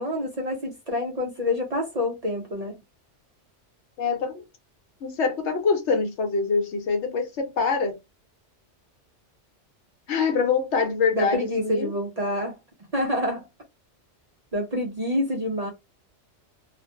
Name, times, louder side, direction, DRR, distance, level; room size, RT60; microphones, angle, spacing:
voice 1, 0.0-2.7 11.1-12.6 12.9-13.4 14.5-15.7, left 1 dB, 45° right, 0.5 m, -27 dB
voice 2, 4.0-4.4 5.0-7.9 10.1-11.9, left 5 dB, 75° left, 1.0 m, -24 dB
2.4 x 2.1 x 2.6 m
omnidirectional pair, 1.2 m